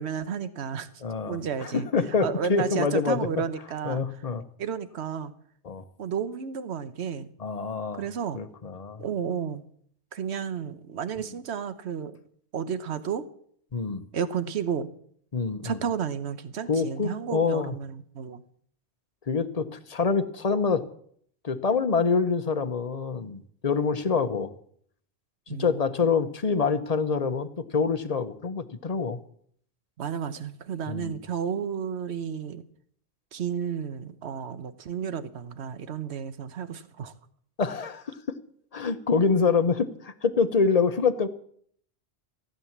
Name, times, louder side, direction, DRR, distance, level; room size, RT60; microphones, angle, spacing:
voice 1, 0.0-0.9 1.2-1.9 2.2-4.0 4.6-5.3 6.0-7.3 7.9-8.4 9.0-9.6 10.1-12.2 12.5-13.3 14.1-14.9 15.6-18.4 25.5-25.8 30.0-32.6 33.3-37.1, right 7 dB, 70° right, 13 dB, 1.2 m, -32 dB
voice 2, 1.0-3.3 3.8-4.4 5.6-5.8 7.4-8.0 8.3-9.0 13.7-14.0 15.3-15.8 16.7-17.7 19.3-20.9 21.4-24.5 25.6-29.2 30.9-31.2 37.6-38.1 38.7-41.3, left 5 dB, 35° left, 10 dB, 1.0 m, -26 dB
15.5 x 9.2 x 7.3 m, 0.63 s
omnidirectional pair, 1.2 m